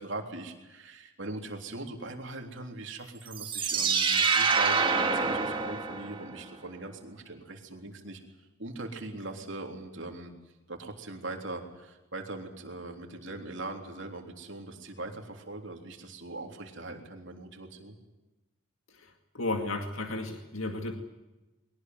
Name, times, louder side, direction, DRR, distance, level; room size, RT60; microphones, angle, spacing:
voice 1, 0.0-8.2 8.6-10.3 10.7-18.0, right 2 dB, 55° right, 3 dB, 3.6 m, -41 dB
sound 1, 3.3-6.4, right 5 dB, 25° right, 2.0 m, -26 dB
voice 2, 18.9-20.9, left 2 dB, 70° left, 4 dB, 2.2 m, -34 dB
22.5 x 18.5 x 9.4 m, 1.0 s
head